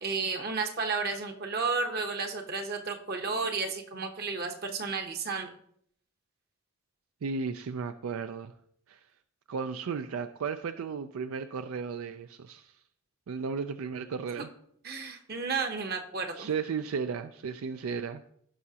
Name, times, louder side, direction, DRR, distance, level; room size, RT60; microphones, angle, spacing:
voice 1, 0.0-5.5 14.8-16.5, right 4 dB, 45° right, 5 dB, 0.9 m, -32 dB
voice 2, 7.2-8.5 8.9-9.0 9.5-12.7 13.3-14.5 16.3-18.2, right 5 dB, 75° right, 10 dB, 0.4 m, -34 dB
15.5 x 5.8 x 2.8 m, 0.67 s
head